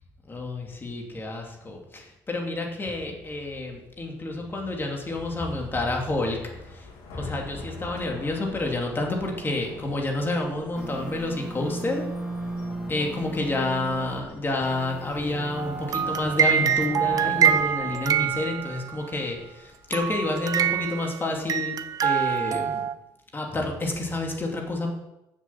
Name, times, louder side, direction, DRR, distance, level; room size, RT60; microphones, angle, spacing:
voice 1, 0.3-6.4 6.7-6.9 7.1-12.1 12.9-21.8 22.0-22.8 23.3-24.9, left 2 dB, 25° left, 1 dB, 2.7 m, -29 dB
Thunder, 5.0-22.8, left 3 dB, 85° left, 2.7 m, -48 dB
sound 1, 10.8-14.2 14.6-17.6, right 1 dB, 5° right, 1.7 m, -36 dB
sound 2, 15.6-18.9 19.9-21.2 21.5-22.9, right 8 dB, 50° right, 0.6 m, -25 dB
7.3 x 7.1 x 7.5 m, 0.90 s
supercardioid pair, 80°, 8 cm